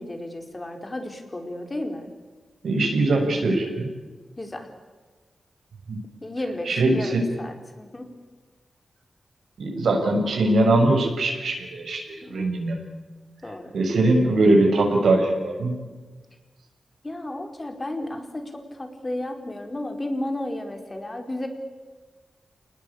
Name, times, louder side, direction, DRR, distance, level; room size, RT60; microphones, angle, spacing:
voice 1, 0.0-2.1 4.4-4.7 6.2-8.1 12.3-12.5 13.4-13.7 17.0-21.5, left 1 dB, 25° left, 5 dB, 4.6 m, -33 dB
voice 2, 2.6-3.9 5.9-6.0 6.6-7.3 9.6-12.8 13.4-15.7, right 2 dB, 85° right, 2 dB, 6.7 m, -21 dB
29.5 x 19.5 x 8.7 m, 1.3 s
wide cardioid pair, 85°, 0 cm